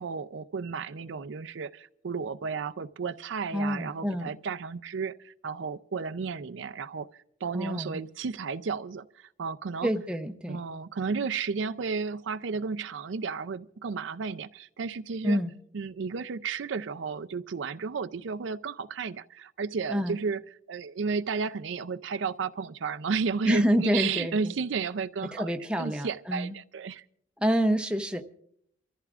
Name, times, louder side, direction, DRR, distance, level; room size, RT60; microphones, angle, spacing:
voice 1, 0.0-7.1 7.4-9.9 10.5-15.4 15.7-20.4 20.7-27.0, right 5 dB, 70° right, 0.5 m, -33 dB
voice 2, 3.5-4.3 7.5-8.0 9.8-10.6 15.2-15.5 19.9-20.2 23.4-24.5 25.3-26.5 27.4-28.2, equal, 5° right, 0.6 m, -27 dB
28.5 x 14.0 x 2.4 m
head